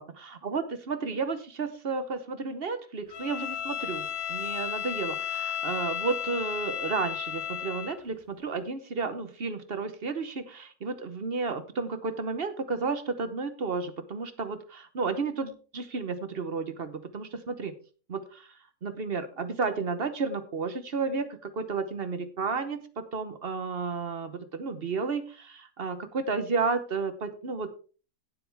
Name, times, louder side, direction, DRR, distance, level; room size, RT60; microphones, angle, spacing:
voice 1, 0.0-17.7 18.1-18.5 18.8-27.7, right 4 dB, 45° right, 11 dB, 1.2 m, -32 dB
Bowed string instrument, 3.1-8.0, left 9 dB, 90° left, 1.5 m, -33 dB
16.5 x 7.7 x 3.5 m, 0.38 s
omnidirectional pair, 1.4 m